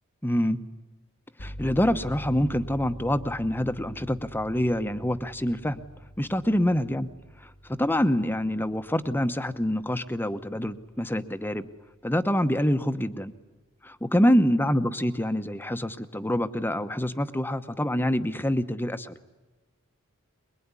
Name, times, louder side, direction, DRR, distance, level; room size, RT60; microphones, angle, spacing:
voice 1, 0.2-0.6 1.4-5.8 6.2-7.1 7.7-11.7 12.0-13.3 13.8-19.2, equal, 10° left, 10 dB, 0.9 m, -26 dB
sound 1, 1.4-11.9, equal, 85° left, 2.1 m, -45 dB
23.5 x 22.5 x 9.7 m, 1.2 s
head